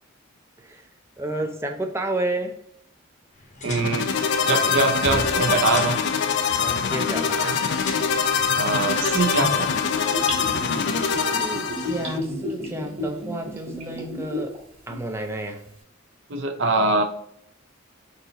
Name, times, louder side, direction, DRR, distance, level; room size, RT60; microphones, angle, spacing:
voice 1, 0.6-0.9 1.2-2.6 6.6-7.6 11.1-14.6 14.9-15.7, right 1 dB, 10° right, 4 dB, 0.4 m, -31 dB
sound 1, 3.3-9.3, left 2 dB, 35° left, 0.8 m, -39 dB
voice 2, 3.6-4.1 4.5-6.0 8.6-9.7 16.3-17.0, right 3 dB, 55° right, 4 dB, 0.6 m, -23 dB
sound 2, 3.7-12.2, left 6 dB, 55° left, 0.3 m, -24 dB
Gurgling / Bathtub (filling or washing), 9.4-14.6 14.9-15.0, left 1 dB, 30° right, 1.4 m, -31 dB
3.9 x 2.8 x 4.0 m, 0.70 s
head